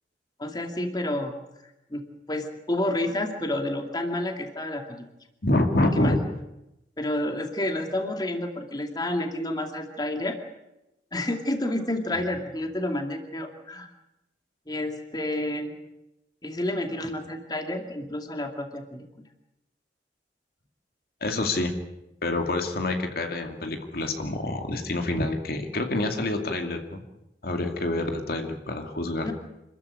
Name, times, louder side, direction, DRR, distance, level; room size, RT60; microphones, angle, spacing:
voice 1, 0.4-1.3 1.9-2.0 2.3-5.0 5.8-6.2 7.0-10.3 11.1-13.9 14.7-15.8 16.4-19.1 29.2-29.3, left 1 dB, 25° left, 4 dB, 2.4 m, -29 dB
voice 2, 5.4-6.2 21.2-21.7 22.2-27.0 27.4-29.3, left 2 dB, 55° left, 4 dB, 2.4 m, -27 dB
26.5 x 14.0 x 9.8 m, 0.93 s
head